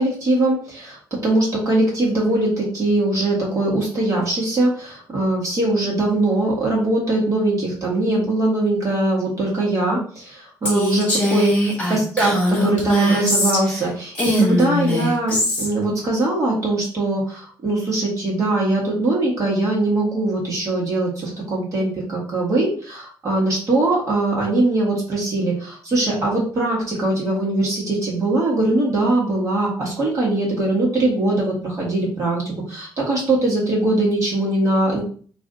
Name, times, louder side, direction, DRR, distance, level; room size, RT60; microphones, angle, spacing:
voice 1, 0.0-12.3 12.6-35.0, right 2 dB, 45° right, -4 dB, 1.6 m, -21 dB
Female speech woman speaking, 10.7-13.8 14.1-15.7, left 1 dB, 15° left, 1.5 m, -21 dB
3.1 x 2.7 x 3.7 m, 0.43 s
cardioid pair, 150°, 8 cm